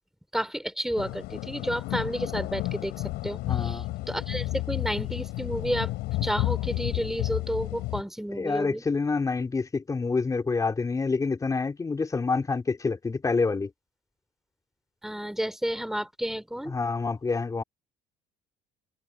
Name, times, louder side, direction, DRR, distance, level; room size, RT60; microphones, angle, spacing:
voice 1, 0.3-2.9 3.2-5.9 6.2-8.8 15.0-16.8, equal, ahead, 4.1 m, -31 dB
sound 1, 1.0-8.0, left 19 dB, 80° left, 5.8 m, -31 dB
voice 2, 3.5-3.9 8.3-13.7 16.7-17.6, left 4 dB, 20° left, 3.7 m, -27 dB
cardioid pair, 120°, 16 cm